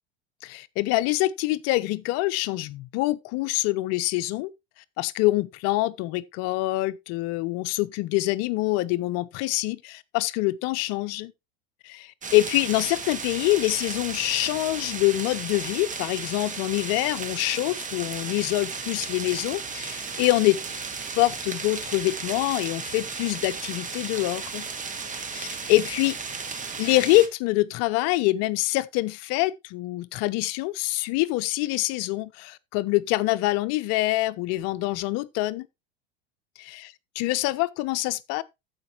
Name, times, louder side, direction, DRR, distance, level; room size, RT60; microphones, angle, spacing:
voice 1, 0.4-4.5 5.0-11.3 11.8-20.6 21.2-24.7 25.3-26.5 26.8-35.7 36.6-38.4, left 19 dB, 55° left, 0.8 m, -25 dB
sound 1, 12.2-27.3, right 5 dB, 25° right, 1.6 m, -34 dB
14.5 x 5.3 x 2.9 m
hypercardioid pair, 90°, 30 cm